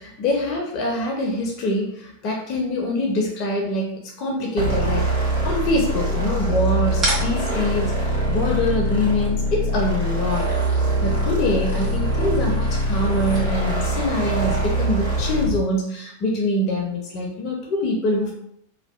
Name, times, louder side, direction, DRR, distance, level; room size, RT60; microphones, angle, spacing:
voice 1, 0.0-10.5 11.0-18.3, left 1 dB, 40° left, 0 dB, 0.4 m, -24 dB
sound 1, 4.6-15.6, right 1 dB, 65° right, 1.0 m, -23 dB
sound 2, 6.9-13.9, right 1 dB, 20° right, 1.0 m, -34 dB
2.5 x 2.1 x 2.3 m, 0.72 s
figure-of-eight pair, 90°, 0 cm